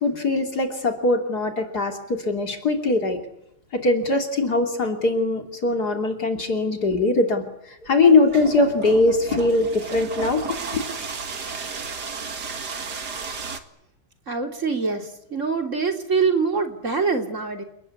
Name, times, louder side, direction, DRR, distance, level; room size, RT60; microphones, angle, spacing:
voice 1, 0.0-3.2 3.7-10.4 10.7-10.8, left 2 dB, 60° left, 4 dB, 3.6 m, -21 dB
sound 1, 7.9-13.6, right 5 dB, 60° right, 2.5 m, -33 dB
voice 2, 14.3-17.6, right 4 dB, 40° right, 4 dB, 3.6 m, -24 dB
30.0 x 19.5 x 8.5 m, 0.81 s
omnidirectional pair, 1.9 m